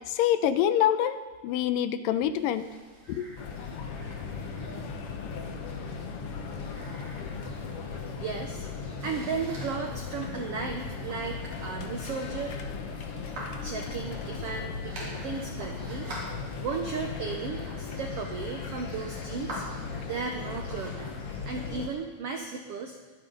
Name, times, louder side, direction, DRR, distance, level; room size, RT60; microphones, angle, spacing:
voice 1, 0.1-1.2 1.4-2.6 3.1-3.3, left 10 dB, 80° left, 11 dB, 2.3 m, -25 dB
sound 1, 2.3-21.9, right 1 dB, 65° right, 5.2 m, -47 dB
sound 2, 3.4-21.9, left 5 dB, 60° left, 1.6 m, -37 dB
voice 2, 8.2-8.7 9.0-12.6 13.1-13.3 13.6-16.1 16.6-19.6 20.0-21.1 21.4-23.0, right 5 dB, 80° right, 3 dB, 1.3 m, -35 dB
23.0 x 9.4 x 3.9 m, 1.4 s
omnidirectional pair, 3.9 m